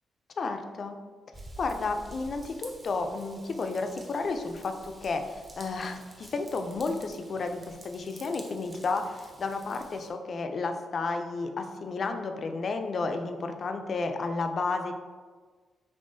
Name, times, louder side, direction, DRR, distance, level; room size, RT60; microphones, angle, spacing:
voice 1, 0.4-1.0 1.6-14.9, left 3 dB, 40° left, 6 dB, 0.3 m, -32 dB
Raindrop / Vehicle horn car horn honking / Trickle dribble, 1.3-10.1, right 2 dB, 20° right, 0.5 m, -50 dB
5.4 x 3.3 x 2.6 m, 1.5 s
wide cardioid pair, 180°, 0 cm